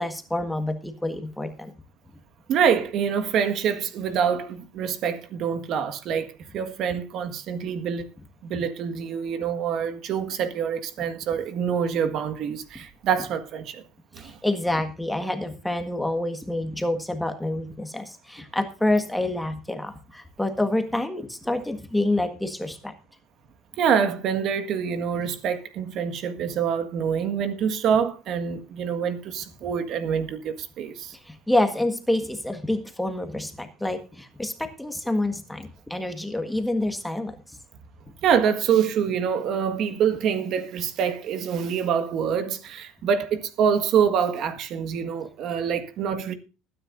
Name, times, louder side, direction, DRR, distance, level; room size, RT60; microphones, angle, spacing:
voice 1, 0.0-1.7 8.2-8.3 8.5-8.6 11.0-11.1 14.2-22.9 31.2-37.4, left 1 dB, 5° left, 1.6 m, -27 dB
voice 2, 2.5-8.1 8.4-13.8 14.1-14.4 23.8-31.1 38.2-46.3, right 7 dB, 50° right, 1.7 m, -26 dB
20.5 x 10.0 x 2.6 m
supercardioid pair, 120°, 0 cm